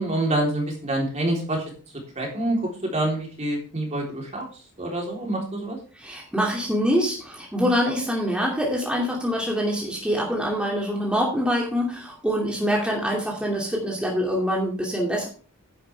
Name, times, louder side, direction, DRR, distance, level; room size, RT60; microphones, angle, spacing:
voice 1, 0.0-1.6 2.2-2.6 2.8-4.4 4.8-5.8, right 1 dB, 30° right, 0 dB, 3.7 m, -26 dB
voice 2, 6.0-15.3, equal, 5° right, -3 dB, 2.6 m, -25 dB
11.0 x 10.5 x 3.5 m, 0.39 s
head